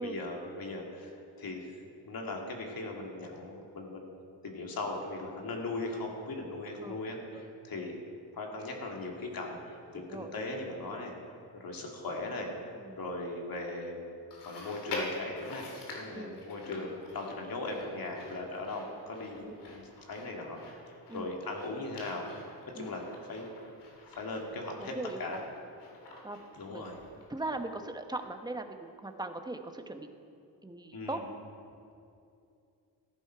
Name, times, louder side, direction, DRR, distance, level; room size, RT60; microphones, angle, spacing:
voice 1, 0.0-1.7 2.1-4.2 4.4-7.9 8.3-11.1 11.5-12.5 13.0-14.0 14.4-23.5 24.0-25.4 26.6-27.0 30.9-31.2, left 2 dB, 60° left, 0 dB, 2.5 m, -39 dB
voice 2, 9.9-10.3 12.8-13.0 16.1-16.4 19.3-19.7 21.1-21.3 22.7-23.0 24.8-25.5 26.2-26.4 26.7-26.9 27.3-30.1 30.6-31.3, right 2 dB, 10° right, 6 dB, 1.0 m, -40 dB
Chewing mastication, 14.3-27.8 28.2-28.3 29.1-29.2, left 2 dB, 90° left, 2.7 m, -46 dB
14.5 x 11.0 x 4.6 m, 2.6 s
cardioid pair, 75°, 40 cm